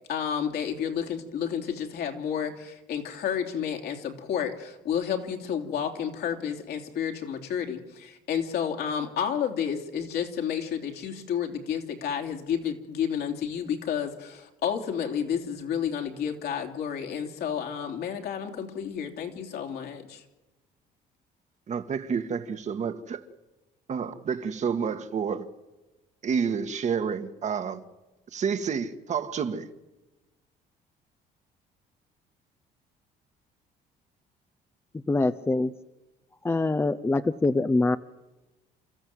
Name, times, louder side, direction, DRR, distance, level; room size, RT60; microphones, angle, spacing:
voice 1, 0.1-20.2, left 8 dB, 70° left, 3.2 m, -31 dB
voice 2, 21.7-23.2 23.9-25.5 26.2-27.8 28.3-29.7, right 6 dB, 45° right, 1.5 m, -29 dB
voice 3, 35.1-35.7 36.4-38.0, left 2 dB, 15° left, 0.7 m, -24 dB
29.5 x 14.0 x 7.8 m
cardioid pair, 110°, 17 cm